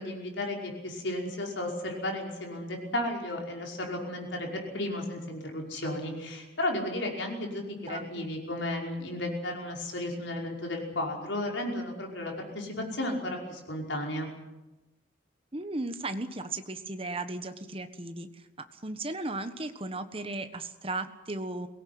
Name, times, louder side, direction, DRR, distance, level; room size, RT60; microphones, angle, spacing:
voice 1, 0.0-14.3, left 1 dB, 70° left, 1 dB, 5.4 m, -34 dB
voice 2, 7.9-8.3 15.5-18.4 18.7-21.7, right 2 dB, 30° right, 9 dB, 1.4 m, -36 dB
23.0 x 18.0 x 9.5 m, 1.1 s
head